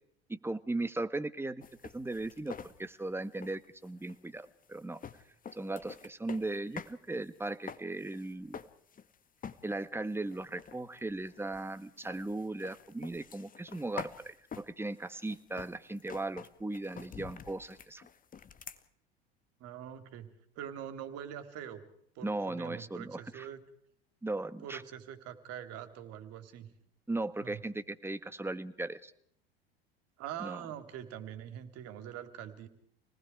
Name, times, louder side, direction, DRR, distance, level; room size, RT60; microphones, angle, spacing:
voice 1, 0.3-5.0 5.5-8.6 9.6-18.0 22.2-23.5 24.2-24.8 27.1-29.1 30.4-30.6, right 2 dB, 10° right, 12 dB, 1.6 m, -37 dB
sound 1, 1.6-7.0 7.3-9.2 9.4-9.9 10.3-18.8, left 6 dB, 30° left, 1.8 m, -48 dB
voice 2, 19.6-20.3 20.6-21.8 22.2-23.6 24.6-26.7 27.4-27.6 30.2-32.7, right 10 dB, 55° right, 9 dB, 3.5 m, -44 dB
28.5 x 19.5 x 4.8 m, 0.67 s
hypercardioid pair, 80°, 30 cm